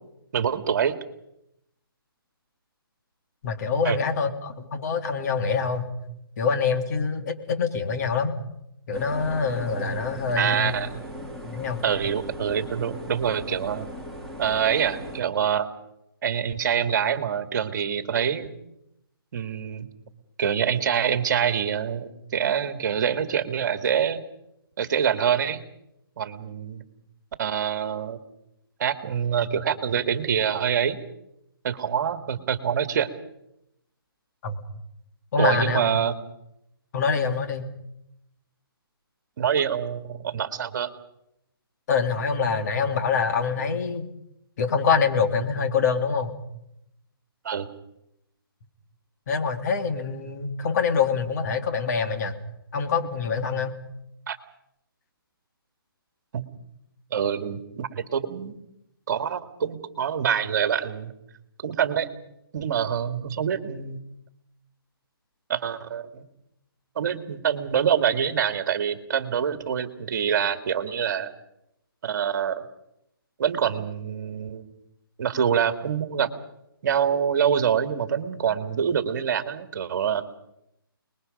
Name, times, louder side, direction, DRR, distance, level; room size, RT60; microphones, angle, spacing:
voice 1, 0.3-1.0 3.8-4.0 10.4-10.9 11.8-13.9 14.4-15.7 16.2-18.5 19.3-19.9 20.4-24.2 24.8-25.6 26.2-26.8 27.4-28.2 28.8-31.0 31.6-33.1 35.4-36.1 39.4-40.9 47.4-47.7 54.3-54.4 56.3-56.5 57.1-58.5 59.1-61.1 61.6-62.1 62.5-64.0 65.5-66.2 67.0-71.3 72.0-72.7 73.4-74.7 75.2-76.3 76.8-80.2, right 8 dB, 50° right, 9 dB, 2.0 m, -25 dB
voice 2, 3.4-5.9 6.4-8.4 8.9-10.7 11.4-11.8 34.4-34.6 35.3-35.8 36.9-37.7 41.9-44.1 44.6-46.3 49.3-52.3 52.7-53.8, left 5 dB, 45° left, 5 dB, 2.5 m, -25 dB
sound 1, 8.9-15.2, equal, 5° left, 2.9 m, -39 dB
29.5 x 21.0 x 5.3 m, 0.82 s
hypercardioid pair, 155°, 13 cm